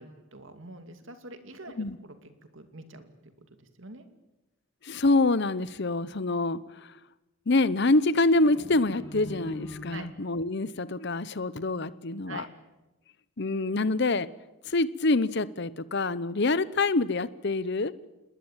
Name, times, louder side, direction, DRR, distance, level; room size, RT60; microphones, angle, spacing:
voice 1, 0.0-4.1 9.9-10.1 12.3-12.5, right 2 dB, 60° right, 7 dB, 2.6 m, -46 dB
voice 2, 4.8-6.6 7.5-12.5 13.4-14.3 14.7-17.9, left 2 dB, 50° left, 16 dB, 0.9 m, -26 dB
sound 1, 8.3-10.4, left 1 dB, 15° left, 7.1 m, -42 dB
27.5 x 20.5 x 9.0 m, 1.0 s
head